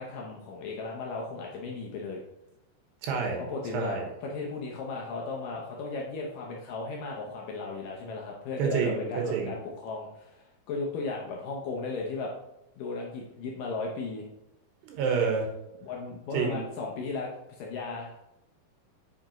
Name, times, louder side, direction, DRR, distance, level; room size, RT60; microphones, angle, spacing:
voice 1, 0.0-2.2 3.4-12.3 12.8-14.3 15.8-18.2, left 3 dB, 75° left, -1 dB, 2.1 m, -36 dB
voice 2, 3.0-3.4 3.7-4.1 8.6-9.5 14.8-15.5 16.3-16.6, right 6 dB, 80° right, 1 dB, 3.3 m, -28 dB
8.9 x 5.2 x 3.0 m, 0.89 s
omnidirectional pair, 4.7 m